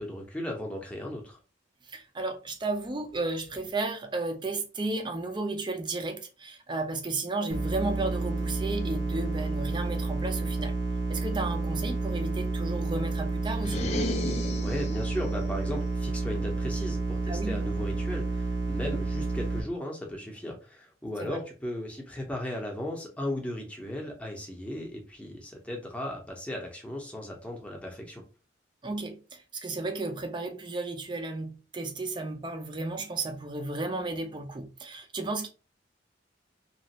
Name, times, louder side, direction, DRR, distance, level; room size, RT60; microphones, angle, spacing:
voice 1, 0.0-1.4 14.6-28.2, left 1 dB, 5° left, 0.8 m, -36 dB
voice 2, 1.8-10.8 11.1-14.0 17.3-17.6 21.2-21.4 28.8-35.5, right 2 dB, 25° right, 0.5 m, -33 dB
sound 1, 7.5-19.6, right 3 dB, 75° right, 0.7 m, -30 dB
sound 2, 13.5-15.2, left 2 dB, 35° left, 0.4 m, -33 dB
3.0 x 2.4 x 2.9 m
head